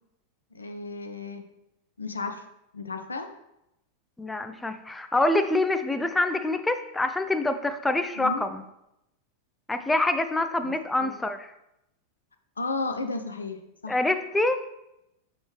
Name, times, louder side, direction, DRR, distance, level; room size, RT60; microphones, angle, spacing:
voice 1, 0.5-1.4 2.0-2.4 2.7-3.3 8.2-8.4 10.6-11.1 12.6-13.9, left 3 dB, 75° left, 7 dB, 0.5 m, -33 dB
voice 2, 4.2-8.6 9.7-11.5 13.9-14.6, left 2 dB, 10° left, 8 dB, 0.5 m, -26 dB
6.1 x 5.7 x 3.2 m, 0.86 s
figure-of-eight pair, 90°, 0 cm